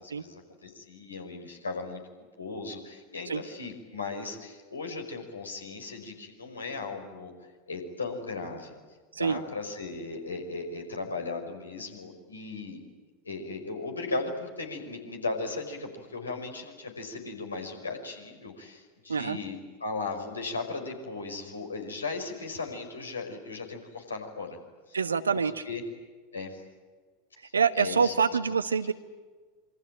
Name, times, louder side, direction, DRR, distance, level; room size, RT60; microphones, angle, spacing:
voice 1, 0.0-2.0 2.4-7.3 7.7-8.8 9.2-12.8 13.2-24.6 24.9-25.0 25.6-25.8 26.3-26.5 27.8-28.4, left 3 dB, 80° left, 4 dB, 5.4 m, -37 dB
voice 2, 24.9-25.6 27.5-28.9, right 6 dB, 80° right, 12 dB, 1.3 m, -26 dB
27.0 x 24.5 x 8.8 m, 1.4 s
figure-of-eight pair, 85°, 0 cm